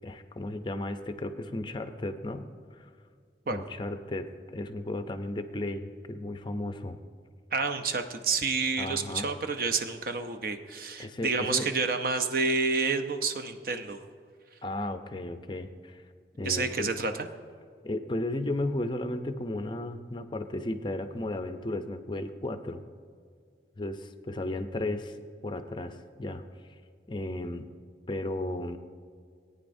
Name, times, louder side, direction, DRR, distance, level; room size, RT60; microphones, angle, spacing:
voice 1, 0.0-2.9 3.5-7.0 8.8-9.3 11.0-11.7 14.6-16.0 16.4-16.9 17.8-22.8 23.8-25.2 25.4-26.4 27.1-27.7 28.1-28.8, left 1 dB, 25° left, 8 dB, 0.5 m, -34 dB
voice 2, 7.5-14.0 16.4-17.3, right 4 dB, 50° right, 7 dB, 0.6 m, -29 dB
18.0 x 9.3 x 2.6 m, 2.2 s
head